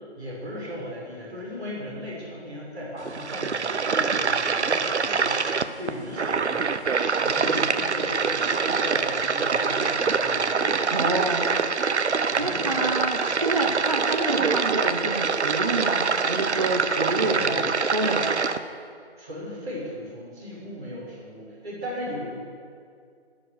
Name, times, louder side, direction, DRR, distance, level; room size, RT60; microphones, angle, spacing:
voice 1, 0.1-6.8 7.2-10.9 12.3-12.9 13.6-13.7 17.1-17.6 18.2-18.4 19.2-22.4, equal, 5° right, -16 dB, 1.0 m, -36 dB
sound 1, 3.0-18.6, right 5 dB, 80° right, 0.9 m, -25 dB
voice 2, 10.9-11.5 12.4-17.6 17.9-18.5, right 2 dB, 35° right, 2 dB, 0.9 m, -28 dB
19.5 x 7.6 x 6.6 m, 2.3 s
hypercardioid pair, 180°, 33 cm